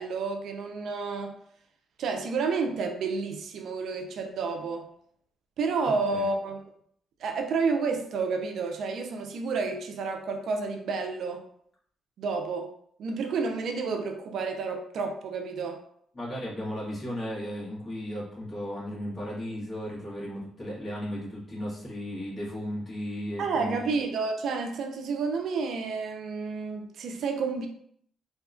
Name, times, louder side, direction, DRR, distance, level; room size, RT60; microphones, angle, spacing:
voice 1, 0.0-1.4 2.0-4.9 5.6-6.6 7.2-11.4 12.2-12.7 13.0-15.8 23.4-27.7, right 4 dB, 70° right, 4 dB, 0.3 m, -30 dB
voice 2, 16.1-23.9, equal, 30° left, -7 dB, 1.3 m, -35 dB
2.7 x 2.2 x 2.5 m, 0.66 s
cardioid pair, 90°, 0 cm